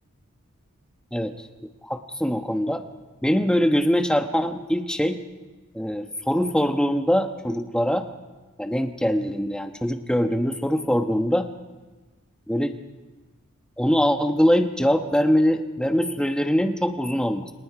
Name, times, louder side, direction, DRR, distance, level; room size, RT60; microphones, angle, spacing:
voice 1, 1.8-2.8 3.2-5.2 5.7-8.1 8.6-11.5 12.5-12.8 13.8-17.5, equal, 5° left, 6 dB, 1.1 m, -23 dB
30.0 x 26.0 x 4.9 m, 1.2 s
head